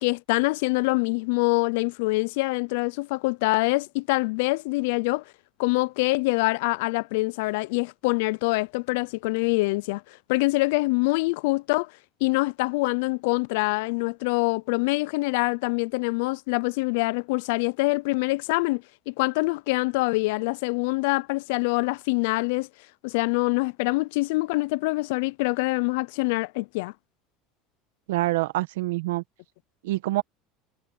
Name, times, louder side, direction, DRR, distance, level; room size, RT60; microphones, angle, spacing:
voice 1, 0.0-5.2 5.6-11.9 12.2-22.7 23.0-26.9, left 24 dB, 75° left, 0.5 m, -25 dB
voice 2, 28.1-29.2 29.8-30.2, right 18 dB, 80° right, 1.6 m, -26 dB
hypercardioid pair, 90°, 0 cm